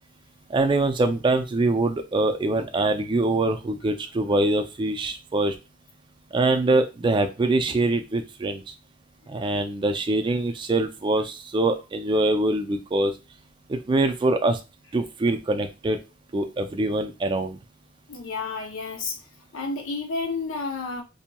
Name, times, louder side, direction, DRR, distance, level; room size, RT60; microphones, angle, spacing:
voice 1, 0.5-5.6 6.3-8.7 9.3-13.1 13.7-14.6 14.9-16.0 16.3-17.6, right 2 dB, 25° right, 6 dB, 0.3 m, -24 dB
voice 2, 18.1-19.2 19.5-21.0, left 4 dB, 80° left, 3 dB, 0.6 m, -30 dB
2.8 x 2.7 x 2.2 m, 0.27 s
head